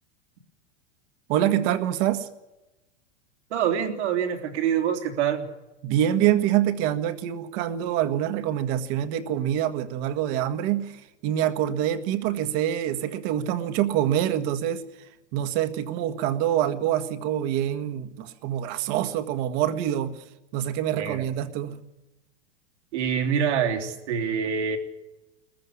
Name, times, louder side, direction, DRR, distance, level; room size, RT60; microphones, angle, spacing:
voice 1, 1.3-2.3 5.8-11.0 11.2-14.8 15.3-20.1 20.5-21.8, right 11 dB, 50° right, 10 dB, 1.8 m, -25 dB
voice 2, 3.5-5.5 20.9-21.2 22.9-24.8, right 8 dB, 75° right, 3 dB, 3.5 m, -25 dB
20.0 x 14.5 x 9.9 m, 1.0 s
supercardioid pair, 130°, 34 cm